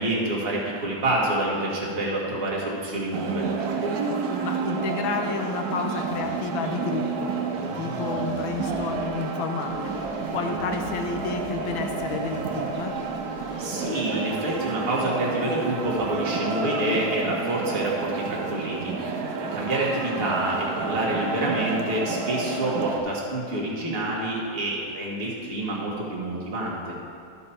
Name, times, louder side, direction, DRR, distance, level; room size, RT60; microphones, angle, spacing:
voice 1, 0.0-3.5 13.6-26.9, right 1 dB, 30° right, -4 dB, 1.5 m, -27 dB
sound 1, 3.1-23.0, right 4 dB, 65° right, 1.1 m, -30 dB
voice 2, 4.4-7.4 7.7-9.9 10.3-12.9, left 5 dB, 90° left, 4 dB, 1.5 m, -31 dB
sound 2, 5.9-7.2 7.5-9.2 9.6-14.8, left 2 dB, 65° left, 2.0 m, -45 dB
12.5 x 5.4 x 4.3 m, 2.3 s
omnidirectional pair, 2.1 m